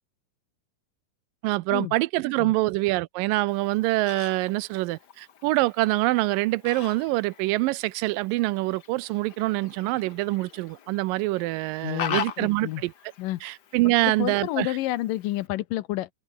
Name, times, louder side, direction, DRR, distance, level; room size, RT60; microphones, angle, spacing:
voice 1, 1.4-12.9 13.4-14.8, right 20 dB, 85° right, 2.3 m, -25 dB
Fowl, 3.5-15.5, left 8 dB, 65° left, 1.0 m, -41 dB
voice 2, 11.8-12.8 13.2-13.4 13.9-16.1, left 16 dB, 80° left, 2.5 m, -30 dB
omnidirectional pair, 3.9 m